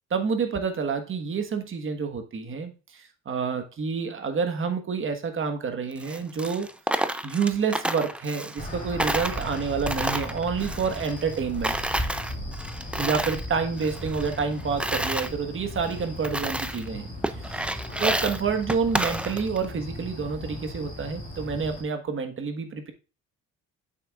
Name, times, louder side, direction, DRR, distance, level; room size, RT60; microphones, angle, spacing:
voice 1, 0.1-6.7 7.2-11.8 13.0-22.9, right 5 dB, 40° right, 1.3 m, -28 dB
Coin (dropping), 5.9-8.7 9.0-11.4 11.6-13.5 13.8-15.3 15.8-15.9 16.2-16.9 17.2-19.7, right 1 dB, 5° right, 0.4 m, -30 dB
sound 1, 8.6-21.8, left 1 dB, 25° left, 3.4 m, -37 dB
sound 2, 12.0-21.6, right 6 dB, 60° right, 1.8 m, -50 dB
7.9 x 7.0 x 2.4 m
cardioid pair, 120°, 31 cm